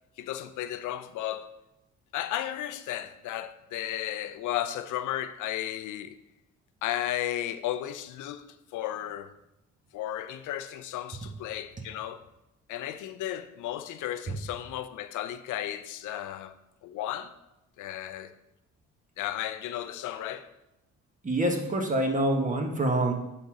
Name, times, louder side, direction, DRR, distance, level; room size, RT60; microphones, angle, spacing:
voice 1, 0.2-1.5 2.1-6.2 6.8-9.3 9.9-12.2 12.7-16.5 16.8-17.3 17.8-18.3 19.2-20.5, left 12 dB, 85° left, 0.5 m, -34 dB
voice 2, 21.2-23.1, right 1 dB, 25° right, 1.3 m, -26 dB
7.6 x 4.0 x 4.8 m
cardioid pair, 90°, 30 cm